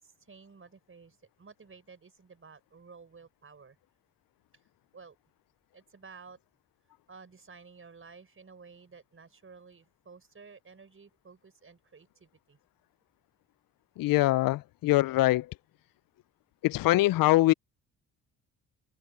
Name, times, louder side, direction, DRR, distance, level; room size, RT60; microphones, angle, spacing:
voice 1, 0.0-3.8 4.9-5.2 5.7-6.4 7.1-12.6, right 5 dB, 35° right, 6.0 m, -53 dB
voice 2, 14.0-15.5 16.6-17.5, left 17 dB, 65° left, 0.7 m, -23 dB
supercardioid pair, 65°, 37 cm